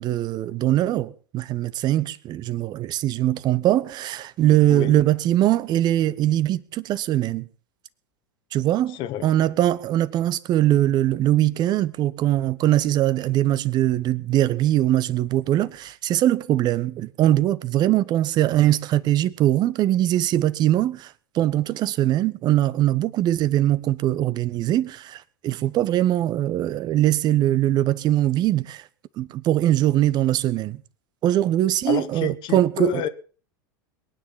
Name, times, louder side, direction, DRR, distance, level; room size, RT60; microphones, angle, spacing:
voice 1, 0.0-7.5 8.5-28.8 29.2-30.8 31.2-33.0, right 13 dB, 40° right, 1.0 m, -21 dB
voice 2, 8.9-9.3 31.8-33.1, left 12 dB, 45° left, 1.5 m, -29 dB
22.0 x 9.8 x 5.8 m
hypercardioid pair, 90°, 11 cm